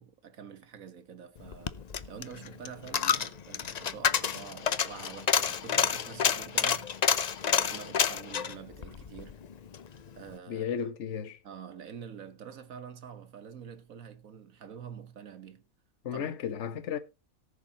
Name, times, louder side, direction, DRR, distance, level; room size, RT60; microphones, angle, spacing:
voice 1, 0.0-1.7 2.0-6.9 7.5-9.4 10.1-10.9 11.4-15.6 16.1-16.2, right 7 dB, 65° right, 1.6 m, -46 dB
Coin (dropping), 1.4-9.9 10.2-10.3, left 7 dB, 70° left, 0.4 m, -29 dB
voice 2, 10.5-11.4 16.0-17.0, left 8 dB, 55° left, 1.3 m, -34 dB
18.5 x 7.0 x 2.8 m
omnidirectional pair, 1.5 m